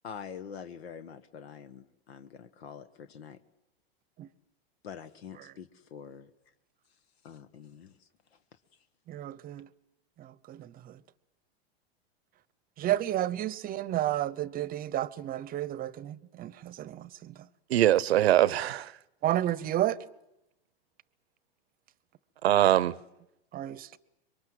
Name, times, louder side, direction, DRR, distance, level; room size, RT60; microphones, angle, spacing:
voice 1, 0.0-3.4 4.8-6.3 7.2-7.9, left 7 dB, 85° left, 1.4 m, -45 dB
voice 2, 9.1-9.7 10.2-10.7 12.8-17.3 19.2-20.0 23.5-24.0, right 13 dB, 30° right, 0.9 m, -31 dB
voice 3, 17.7-18.9 22.4-22.9, right 13 dB, 85° right, 0.9 m, -22 dB
26.0 x 23.0 x 7.8 m
hypercardioid pair, 125°, 31 cm